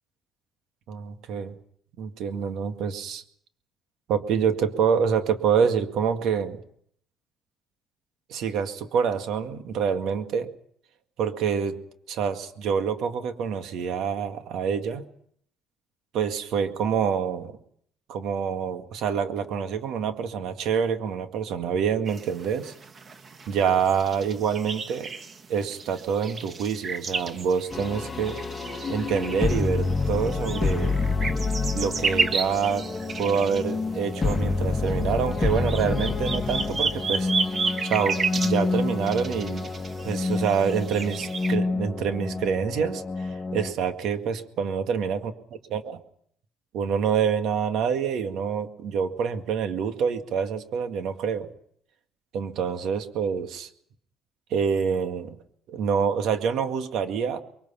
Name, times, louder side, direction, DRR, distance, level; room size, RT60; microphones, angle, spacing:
voice 1, 0.9-1.5 2.0-3.2 4.1-6.6 8.3-10.5 11.2-11.8 12.1-15.0 16.1-17.5 18.1-22.7 23.5-25.1 25.5-28.4 28.9-31.0 31.7-32.9 33.2-37.3 37.9-39.7 40.0-45.2 45.7-46.0 46.7-51.5 52.3-53.7 54.5-55.4 55.7-57.4, right 7 dB, 70° right, 7 dB, 2.0 m, -26 dB
sound 1, 22.1-41.5, right 4 dB, 35° right, 1.4 m, -33 dB
sound 2, 27.7-43.7, left 3 dB, 25° left, 1.9 m, -28 dB
23.5 x 22.5 x 5.9 m, 0.66 s
cardioid pair, 110°, 0 cm